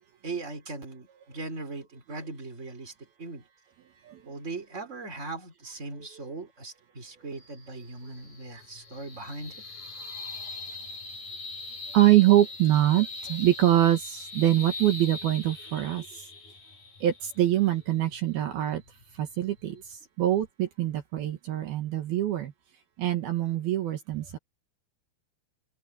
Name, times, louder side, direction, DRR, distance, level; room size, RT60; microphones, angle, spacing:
voice 1, 0.2-2.9 3.2-3.4 4.2-9.6 19.7-19.8, right 3 dB, 15° right, 4.6 m, -39 dB
sound 1, 7.3-20.0, left 3 dB, 55° left, 8.6 m, -42 dB
voice 2, 11.9-16.3 17.0-18.8 19.2-22.5 23.0-24.4, right 13 dB, 70° right, 3.4 m, -24 dB
omnidirectional pair, 4.7 m